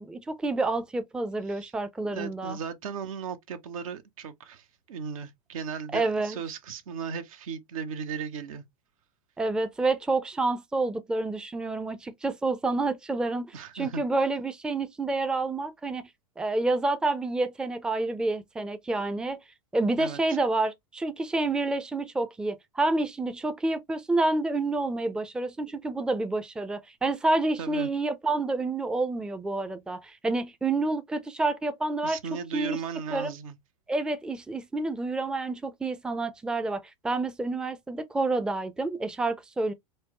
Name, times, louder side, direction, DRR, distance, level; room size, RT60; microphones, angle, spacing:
voice 1, 0.0-2.6 5.9-6.4 9.4-16.1 16.4-19.4 19.7-32.2 32.5-32.8 33.1-33.3 33.9-39.7, right 2 dB, 5° right, 0.4 m, -28 dB
voice 2, 2.0-8.6 13.5-14.0 20.0-20.4 27.6-27.9 32.0-33.6, right 6 dB, 70° right, 0.8 m, -36 dB
4.5 x 2.1 x 2.9 m
hypercardioid pair, 95°, 18 cm